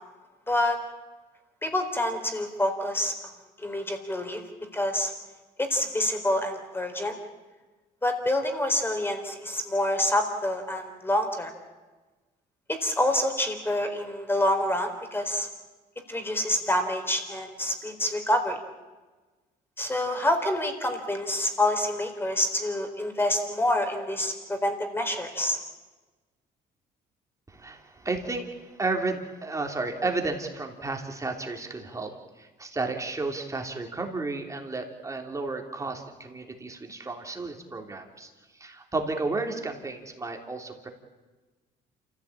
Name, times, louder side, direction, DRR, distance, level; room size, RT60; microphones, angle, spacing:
voice 1, 0.5-0.8 1.6-3.1 3.6-4.4 4.7-5.1 5.6-7.2 8.0-11.5 12.7-15.5 16.1-18.6 19.8-25.6, left 1 dB, 15° left, 6 dB, 4.1 m, -27 dB
voice 2, 27.5-40.9, right 3 dB, 20° right, 3 dB, 3.3 m, -32 dB
28.0 x 15.5 x 8.8 m, 1.2 s
cardioid pair, 110°, 17 cm